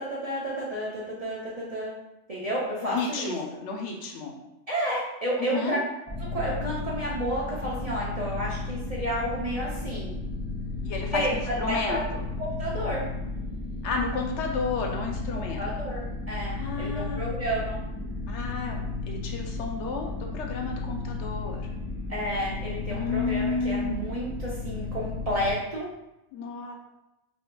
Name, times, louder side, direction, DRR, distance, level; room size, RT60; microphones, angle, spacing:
voice 1, 0.0-1.9 2.3-3.3 4.7-5.8 6.3-10.2 11.1-12.0 12.4-13.1 15.3-17.8 22.1-25.9, equal, 45° right, -6 dB, 0.5 m, -31 dB
voice 2, 2.8-4.4 5.4-5.8 10.8-12.2 13.8-15.9 16.5-17.3 18.3-21.7 22.9-24.1 26.3-26.8, left 4 dB, 75° left, 1 dB, 0.8 m, -32 dB
sound 1, 6.1-25.5, left 3 dB, 5° left, 0.8 m, -34 dB
3.6 x 2.6 x 2.2 m, 0.92 s
omnidirectional pair, 1.2 m